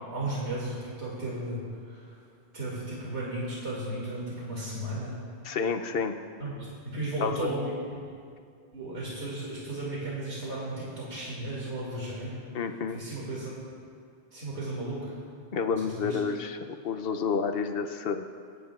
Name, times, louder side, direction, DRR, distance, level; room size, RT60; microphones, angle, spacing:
voice 1, 0.0-1.6 1.9-2.2 2.5-5.1 6.4-7.7 8.7-12.4 12.9-13.5 14.3-15.1 15.7-16.2, right 1 dB, 80° right, -6 dB, 2.6 m, -35 dB
voice 2, 5.4-6.2 7.2-7.3 12.5-13.0 15.5-18.3, left 5 dB, 65° left, 7 dB, 0.8 m, -30 dB
26.5 x 9.6 x 2.4 m, 2.2 s
omnidirectional pair, 1.1 m